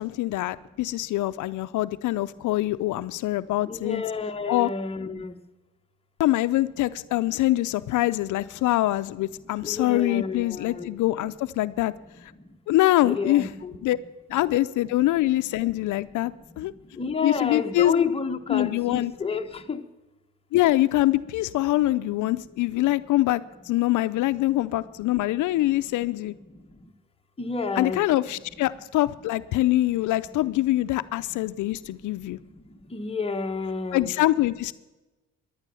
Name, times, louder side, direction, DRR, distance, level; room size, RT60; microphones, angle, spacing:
voice 1, 0.0-4.0 4.5-4.7 6.2-11.9 12.2-12.3 12.7-13.5 13.8-14.0 14.3-16.7 17.2-17.9 18.5-19.1 20.5-26.4 27.8-32.4 33.9-34.7, left 16 dB, 80° left, 14 dB, 0.5 m, -24 dB
voice 2, 3.7-5.3 9.6-10.9 13.0-13.7 17.0-19.8 27.4-28.1 32.9-34.1, left 4 dB, 20° left, 4 dB, 1.1 m, -30 dB
15.0 x 10.5 x 6.9 m, 1.1 s
cardioid pair, 90°, 30 cm